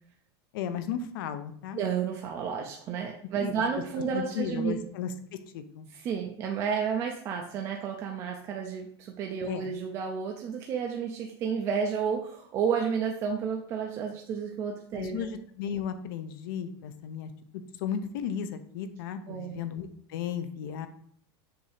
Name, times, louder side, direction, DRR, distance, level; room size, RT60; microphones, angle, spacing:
voice 1, 0.5-1.8 3.4-3.5 4.1-5.9 9.4-9.7 14.9-20.9, left 8 dB, 55° left, 10 dB, 0.7 m, -35 dB
voice 2, 1.7-4.9 5.9-15.3 19.3-19.6, right 6 dB, 25° right, 1 dB, 0.5 m, -31 dB
7.0 x 2.8 x 5.0 m, 0.63 s
supercardioid pair, 180°, 13 cm